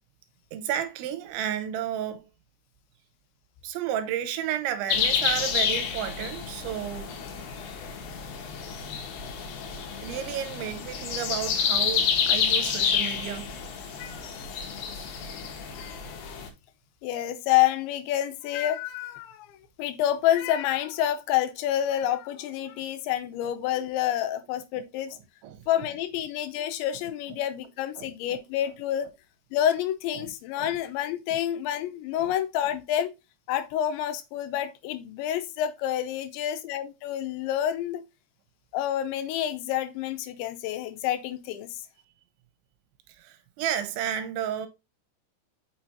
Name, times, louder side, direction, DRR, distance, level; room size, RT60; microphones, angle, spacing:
voice 1, 0.5-2.3 3.6-7.1 10.0-13.5 25.4-25.6 28.0-28.1 30.2-30.3 30.6-30.8 31.3-31.4 32.1-32.3 43.1-44.7, right 10 dB, 90° right, 3.2 m, -32 dB
sound 1, 4.9-16.5, left 7 dB, 75° left, 3.5 m, -29 dB
voice 2, 15.7-16.4 17.0-25.2 25.7-29.1 29.5-33.1 33.5-38.0 38.7-41.8, left 11 dB, 90° left, 3.0 m, -28 dB
6.8 x 5.9 x 2.8 m
omnidirectional pair, 5.3 m